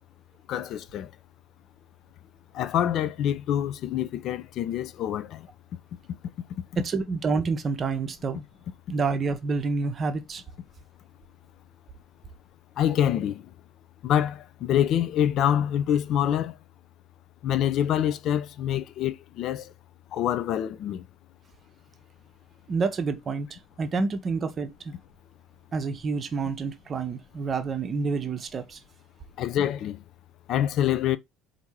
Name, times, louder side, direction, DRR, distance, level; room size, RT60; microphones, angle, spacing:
voice 1, 0.5-1.1 2.5-5.5 12.8-13.5 14.0-16.6 17.4-19.7 20.1-21.0 29.4-30.0 30.5-31.2, left 10 dB, 50° left, 0.4 m, -26 dB
voice 2, 6.8-8.4 8.9-10.4 22.7-24.9 25.7-28.8, right 4 dB, 35° right, 0.7 m, -28 dB
4.5 x 2.7 x 4.3 m
figure-of-eight pair, 60°, 0 cm